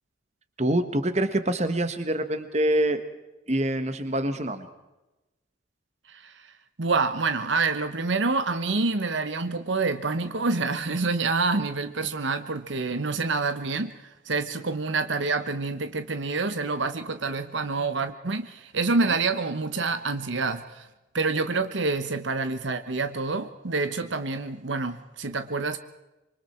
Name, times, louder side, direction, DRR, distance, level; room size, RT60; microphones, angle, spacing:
voice 1, 0.6-3.0 3.5-4.7 19.1-19.2, right 1 dB, 35° right, 9 dB, 1.6 m, -25 dB
voice 2, 6.1-6.5 6.8-20.9 21.1-25.8, right 3 dB, 75° right, 10 dB, 1.1 m, -27 dB
26.0 x 24.0 x 4.5 m, 1.0 s
head